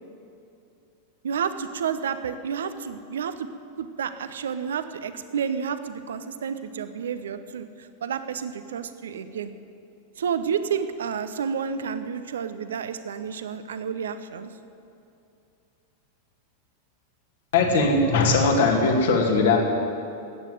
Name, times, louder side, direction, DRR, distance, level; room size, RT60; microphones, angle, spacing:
voice 1, 1.2-3.5 3.8-9.5 10.2-14.5, right 7 dB, 65° right, 11 dB, 0.7 m, -30 dB
voice 2, 17.5-19.6, left 3 dB, 60° left, 1 dB, 2.3 m, -20 dB
14.5 x 9.1 x 9.2 m, 2.7 s
figure-of-eight pair, 90°, 0 cm